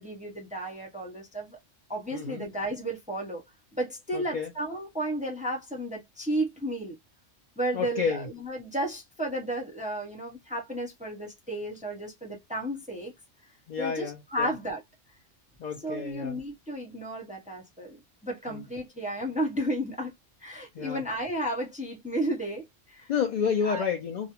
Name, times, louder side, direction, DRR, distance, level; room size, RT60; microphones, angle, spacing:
voice 1, 0.0-1.6 1.9-3.4 3.7-7.0 7.6-13.1 13.8-14.8 15.8-20.1 20.4-23.1 23.7-23.8, right 1 dB, 10° right, 0.5 m, -33 dB
voice 2, 2.1-2.5 4.1-4.5 7.7-8.3 13.7-14.5 15.6-16.4 18.5-18.6 20.7-21.0 23.1-24.3, left 6 dB, 65° left, 0.4 m, -30 dB
2.4 x 2.0 x 2.8 m
omnidirectional pair, 1.2 m